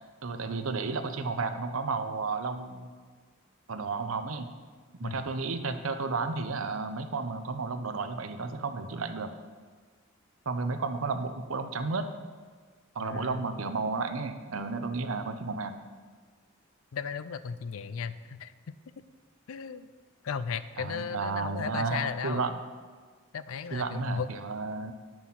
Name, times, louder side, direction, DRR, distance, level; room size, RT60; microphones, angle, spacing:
voice 1, 0.2-2.9 3.7-4.5 5.0-9.3 10.5-12.1 12.9-15.7 20.8-22.6 23.7-24.9, right 4 dB, 80° right, 8 dB, 0.7 m, -32 dB
voice 2, 13.0-13.5 16.9-18.5 19.5-19.9 20.2-22.5 23.3-24.3, left 6 dB, 85° left, 14 dB, 0.4 m, -35 dB
9.2 x 6.2 x 5.7 m, 1.5 s
head